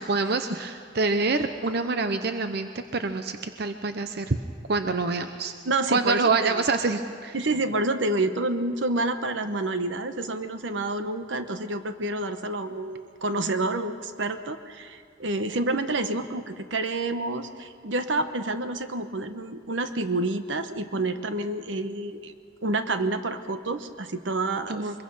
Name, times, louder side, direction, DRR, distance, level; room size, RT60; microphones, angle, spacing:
voice 1, 0.0-4.4 4.7-5.5 5.9-7.3 24.7-25.0, right 3 dB, 60° right, 8 dB, 0.8 m, -26 dB
voice 2, 5.7-6.6 7.3-22.3 22.6-24.8, right 2 dB, 80° right, 9 dB, 1.1 m, -28 dB
23.5 x 22.0 x 5.6 m, 2.1 s
head